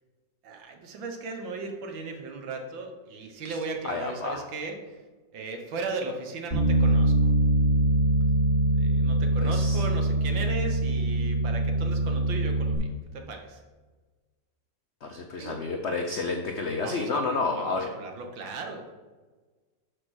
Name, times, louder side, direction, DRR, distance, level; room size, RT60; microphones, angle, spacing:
voice 1, 0.4-4.8 5.3-7.3 8.7-13.6 15.4-15.6 16.8-18.9, right 3 dB, 80° right, 4 dB, 1.6 m, -37 dB
voice 2, 3.8-4.4 9.4-9.8 15.0-17.9, left 3 dB, 90° left, 3 dB, 0.6 m, -30 dB
Bass guitar, 6.5-12.8, right 2 dB, 35° right, 2.4 m, -23 dB
6.5 x 5.4 x 6.1 m, 1.3 s
omnidirectional pair, 2.1 m